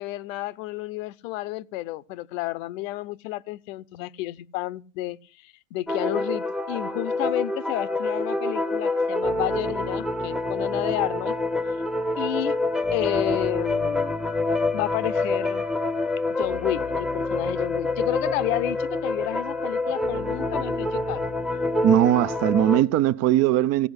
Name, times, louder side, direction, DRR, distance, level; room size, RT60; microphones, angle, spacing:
voice 1, 0.0-5.2 5.4-11.4 12.2-12.6 12.9-14.2 14.7-15.7 16.4-21.2, left 17 dB, 65° left, 0.8 m, -31 dB
sound 1, 5.9-22.8, left 2 dB, ahead, 0.8 m, -27 dB
voice 2, 21.8-23.9, right 12 dB, 35° right, 0.6 m, -20 dB
15.5 x 5.3 x 9.6 m
supercardioid pair, 115°, 44 cm